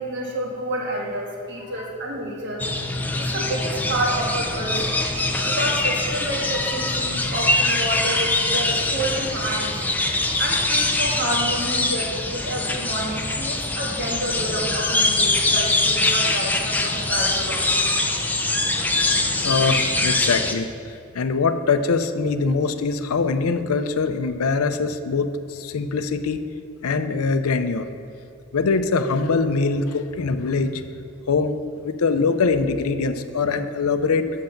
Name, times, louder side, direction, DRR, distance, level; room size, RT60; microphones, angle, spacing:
voice 1, 0.0-2.6 3.2-4.9 5.4-9.8 10.4-17.9, right 1 dB, 55° right, -1 dB, 1.6 m, -29 dB
sound 1, 2.6-20.5, left 2 dB, 10° left, 0.5 m, -23 dB
voice 2, 19.4-26.4 26.8-27.9 28.5-30.8 31.3-31.6 31.8-34.3, left 4 dB, 75° left, 9 dB, 0.5 m, -23 dB
7.8 x 6.4 x 5.8 m, 2.6 s
head